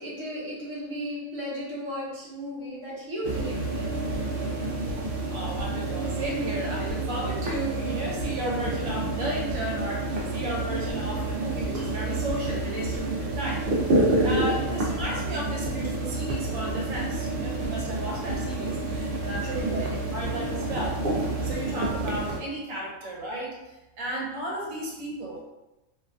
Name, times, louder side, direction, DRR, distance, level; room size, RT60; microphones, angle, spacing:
voice 1, 0.0-3.9 19.5-19.9, equal, 25° right, -8 dB, 0.8 m, -35 dB
sound 1, 3.2-22.4, right 2 dB, 60° right, 0.6 m, -29 dB
voice 2, 5.3-19.8 20.1-25.4, right 2 dB, 75° right, -3 dB, 1.1 m, -34 dB
2.9 x 2.2 x 2.5 m, 0.96 s
omnidirectional pair, 1.4 m